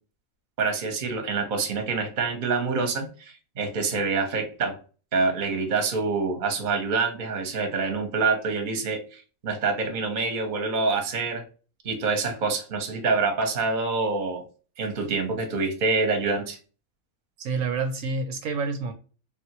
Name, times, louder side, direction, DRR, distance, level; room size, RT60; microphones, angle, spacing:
voice 1, 0.6-4.8 5.1-11.4 11.8-14.4 14.8-16.6, right 4 dB, 40° right, 4 dB, 0.8 m, -26 dB
voice 2, 17.4-18.9, right 4 dB, 75° right, 6 dB, 0.9 m, -28 dB
3.5 x 2.4 x 2.8 m, 0.37 s
omnidirectional pair, 1.5 m